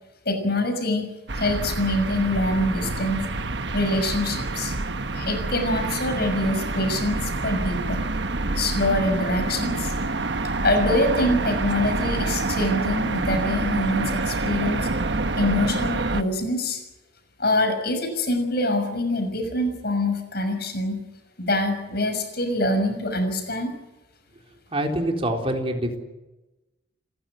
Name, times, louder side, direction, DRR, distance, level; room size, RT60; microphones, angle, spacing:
voice 1, 0.2-1.1 1.3-3.3 3.7-4.8 5.1-8.0 8.6-9.9 10.6-14.9 15.4-16.8 17.4-21.0 21.4-23.7, left 1 dB, 55° left, 6 dB, 6.2 m, -25 dB
sound 1, 1.3-16.2, right 2 dB, 60° right, 1.3 m, -27 dB
voice 2, 24.7-26.0, right 1 dB, 30° right, 3 dB, 3.8 m, -25 dB
29.5 x 14.5 x 9.1 m, 1.0 s
head